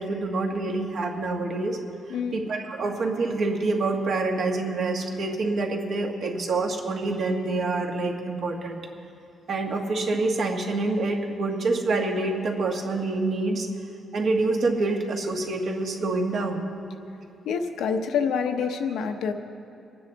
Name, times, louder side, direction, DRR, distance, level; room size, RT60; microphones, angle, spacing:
voice 1, 0.0-1.8 2.1-8.8 9.5-13.7 14.1-16.7, right 3 dB, 55° right, 1 dB, 1.6 m, -26 dB
voice 2, 17.4-19.3, left 6 dB, 90° left, 5 dB, 0.9 m, -27 dB
24.0 x 9.5 x 4.0 m, 2.6 s
cardioid pair, 130°, 0 cm